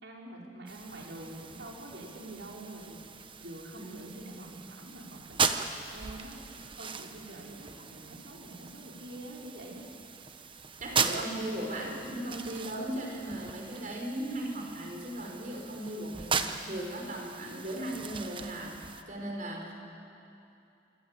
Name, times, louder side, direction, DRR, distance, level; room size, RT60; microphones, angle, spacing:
voice 1, 0.0-3.0 3.4-9.9, right 1 dB, 80° right, -2 dB, 5.4 m, -46 dB
sound 1, 0.7-19.0, right 5 dB, 30° right, 1.1 m, -38 dB
voice 2, 3.8-4.2 10.8-19.7, right 1 dB, 45° right, 1 dB, 5.3 m, -37 dB
26.5 x 25.0 x 8.5 m, 2.6 s
head